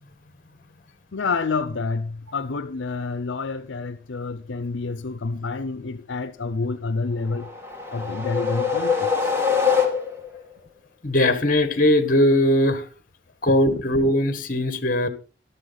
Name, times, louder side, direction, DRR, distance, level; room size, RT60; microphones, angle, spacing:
voice 1, 1.1-7.5 7.9-9.1, left 4 dB, 75° left, 0.6 m, -28 dB
sound 1, 7.3-10.4, left 6 dB, 10° right, 2.4 m, -23 dB
voice 2, 11.0-12.8 13.4-15.1, left 1 dB, 45° left, 1.6 m, -20 dB
14.5 x 11.5 x 4.0 m
head